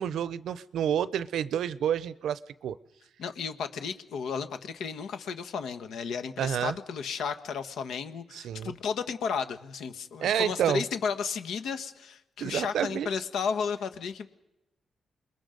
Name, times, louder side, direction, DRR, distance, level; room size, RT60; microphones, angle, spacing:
voice 1, 0.0-2.8 6.4-6.8 8.3-8.7 10.2-10.8 12.4-13.1, right 9 dB, 85° right, 17 dB, 0.7 m, -29 dB
voice 2, 3.2-14.3, left 6 dB, 85° left, 9 dB, 1.4 m, -33 dB
28.0 x 21.5 x 5.3 m, 0.94 s
cardioid pair, 75°, 0 cm